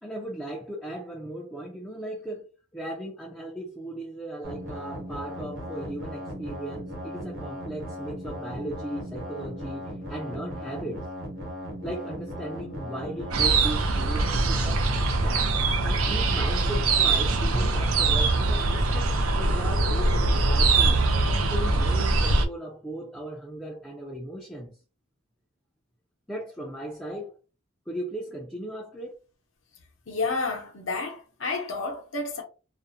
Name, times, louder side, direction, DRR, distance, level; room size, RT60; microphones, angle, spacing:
voice 1, 0.0-2.5 2.7-11.1 11.8-15.5 15.8-21.0 21.3-24.8 26.3-27.4 27.9-29.1, right 1 dB, 5° left, 0.3 m, -37 dB
sound 1, 4.4-13.5, equal, 70° right, 1.1 m, -37 dB
sound 2, 9.4-12.4 12.9-13.3 17.5-21.9, equal, 50° right, 0.7 m, -45 dB
sound 3, 13.3-22.5, right 3 dB, 90° right, 0.5 m, -23 dB
voice 2, 30.1-32.4, left 3 dB, 65° left, 0.7 m, -30 dB
2.5 x 2.0 x 2.6 m
head